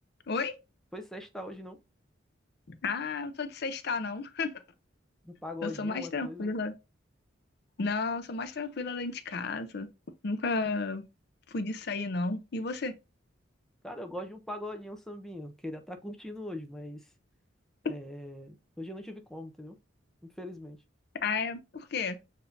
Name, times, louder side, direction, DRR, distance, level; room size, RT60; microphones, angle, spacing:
voice 1, 0.9-1.8 5.2-6.5 13.8-17.1 17.9-19.8 20.4-20.8, left 1 dB, ahead, 0.5 m, -41 dB
voice 2, 2.7-4.5 5.6-6.7 7.8-9.9 10.2-11.0 11.5-12.9 17.8-17.9 21.2-22.2, left 4 dB, 55° left, 0.5 m, -32 dB
6.8 x 2.7 x 2.5 m
head